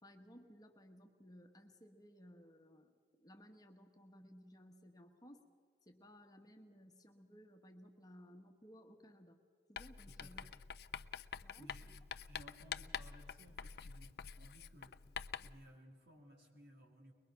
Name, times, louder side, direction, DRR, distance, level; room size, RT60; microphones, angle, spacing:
voice 1, 0.0-2.9 3.2-5.4 5.8-9.4 9.7-10.4 11.4-11.7, equal, 20° left, 4 dB, 1.3 m, -59 dB
Writing, 9.8-15.6, left 7 dB, 60° left, 0.4 m, -47 dB
voice 2, 10.0-10.5 11.6-12.0 12.2-14.9 15.4-17.1, equal, 65° right, 1 dB, 3.5 m, -60 dB
22.5 x 21.5 x 5.8 m, 2.1 s
head